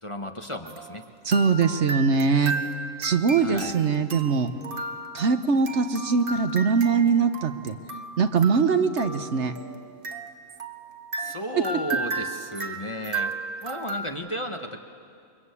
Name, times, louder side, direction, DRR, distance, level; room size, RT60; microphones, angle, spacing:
voice 1, 0.0-1.0 3.4-3.7 11.2-13.3 13.6-14.8, equal, 25° left, 5 dB, 1.4 m, -34 dB
sound 1, 0.6-14.1, right 3 dB, 45° right, 1.5 m, -35 dB
voice 2, 1.2-2.5 3.0-4.5 5.1-7.8 8.2-9.5, right 5 dB, 60° right, 8 dB, 1.3 m, -22 dB
29.0 x 23.0 x 8.5 m, 2.3 s
omnidirectional pair, 1.3 m